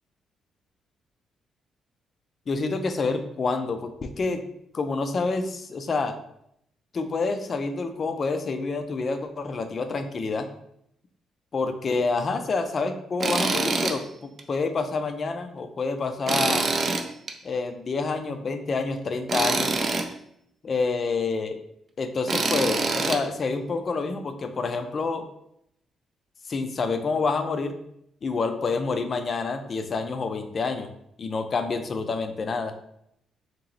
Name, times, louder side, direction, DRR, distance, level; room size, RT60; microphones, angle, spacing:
voice 1, 2.5-4.4 4.7-6.2 6.9-10.5 11.5-16.7 17.4-19.7 20.6-21.6 22.0-25.2 26.5-27.7 28.2-30.9 31.2-32.7, left 4 dB, 40° left, 8 dB, 0.4 m, -28 dB
Tools, 13.2-14.0 14.4-14.5 16.3-17.3 19.3-20.1 22.3-23.2, right 3 dB, 40° right, 0.4 m, -25 dB
2.9 x 2.9 x 3.9 m, 0.74 s
cardioid pair, 120°, 0 cm